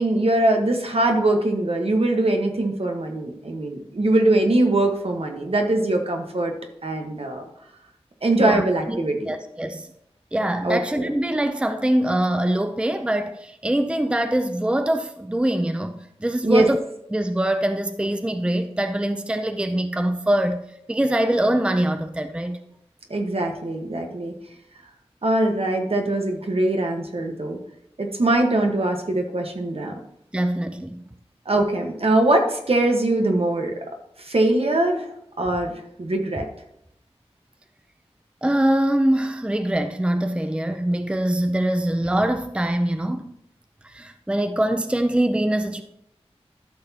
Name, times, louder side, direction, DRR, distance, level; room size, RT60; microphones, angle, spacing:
voice 1, 0.0-6.5 6.8-7.5 8.2-9.3 10.6-11.1 16.4-16.7 23.1-24.4 25.2-27.6 28.0-29.9 31.4-33.7 34.2-35.1 35.4-36.5, right 2 dB, 65° right, 1.3 m, -22 dB
voice 2, 8.4-9.9 10.3-16.8 17.1-20.6 20.9-22.6 30.3-31.0 38.4-43.3 43.8-45.8, right 1 dB, 10° right, 0.5 m, -23 dB
13.0 x 6.0 x 2.9 m
wide cardioid pair, 65°, 11 cm